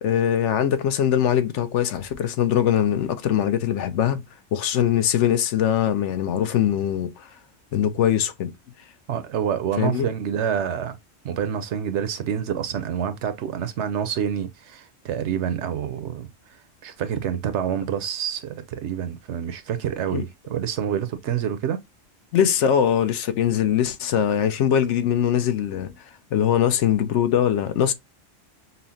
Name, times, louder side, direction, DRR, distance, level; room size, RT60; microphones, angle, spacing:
voice 1, 0.0-4.2 4.5-7.3 7.7-8.5 9.8-10.1 20.1-20.2 22.3-25.9 26.3-27.9, left 9 dB, 70° left, 0.8 m, -22 dB
voice 2, 9.1-11.0 11.2-16.6 16.8-21.8, right 8 dB, 70° right, 0.8 m, -27 dB
5.5 x 2.0 x 2.7 m
omnidirectional pair, 1.3 m